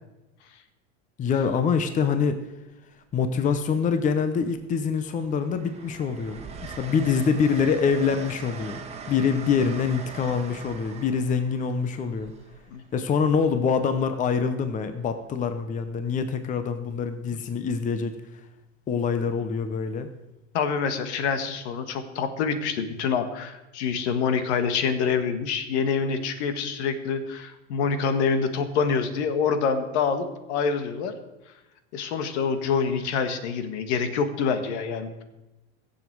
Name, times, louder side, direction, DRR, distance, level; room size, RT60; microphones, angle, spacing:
voice 1, 1.2-2.4 3.1-8.8 9.1-12.3 12.9-18.2 18.9-20.1, left 6 dB, 20° left, 9 dB, 0.8 m, -25 dB
Train, 4.0-4.1 4.5-13.3 14.9-15.1, right 5 dB, 20° right, 1.7 m, -42 dB
voice 2, 20.5-31.1 31.9-35.2, left 5 dB, 70° left, 9 dB, 1.6 m, -26 dB
21.5 x 7.3 x 4.7 m, 1.0 s
supercardioid pair, 130°, 35 cm